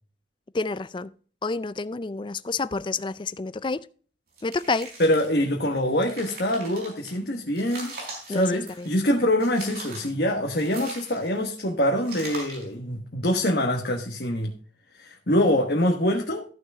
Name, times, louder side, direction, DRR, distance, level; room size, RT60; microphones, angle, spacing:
voice 1, 0.5-1.1 1.4-3.8 4.4-4.9 8.3-8.5 8.8-8.9, left 3 dB, 25° left, 0.4 m, -29 dB
sound 1, 4.3-5.4 5.9-7.1 7.6-9.0 9.4-10.1 10.6-11.5 12.0-12.7, right 2 dB, 55° right, 4.9 m, -41 dB
voice 2, 5.0-7.9 8.3-14.5 15.0-16.4, left 1 dB, 55° left, 1.4 m, -24 dB
14.0 x 6.1 x 3.6 m
head